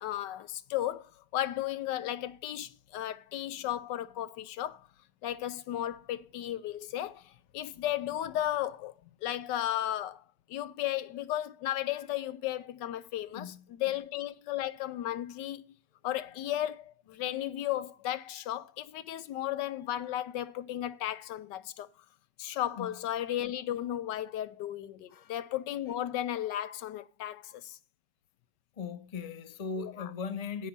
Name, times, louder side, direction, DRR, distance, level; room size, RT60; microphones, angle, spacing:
voice 1, 0.0-4.9 5.2-8.9 9.2-10.2 10.5-15.7 16.0-21.9 22.4-27.8 29.8-30.1, left 12 dB, 85° left, 1.3 m, -35 dB
voice 2, 13.3-14.0 22.8-23.0 25.1-25.3 28.8-30.7, left 5 dB, 35° left, 0.7 m, -39 dB
9.7 x 8.3 x 5.2 m
omnidirectional pair, 1.8 m